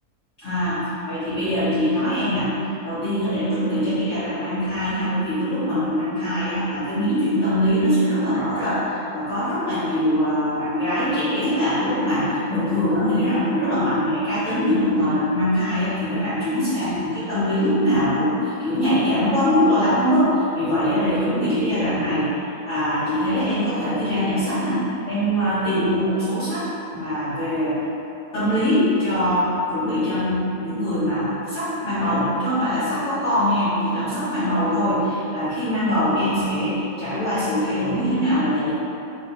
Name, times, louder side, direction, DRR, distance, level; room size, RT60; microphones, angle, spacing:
voice 1, 0.4-22.4 22.6-26.7 26.9-27.8 28.3-38.7, equal, 50° left, -18 dB, 1.6 m, -22 dB
4.1 x 3.5 x 2.7 m, 2.9 s
omnidirectional pair, 1.6 m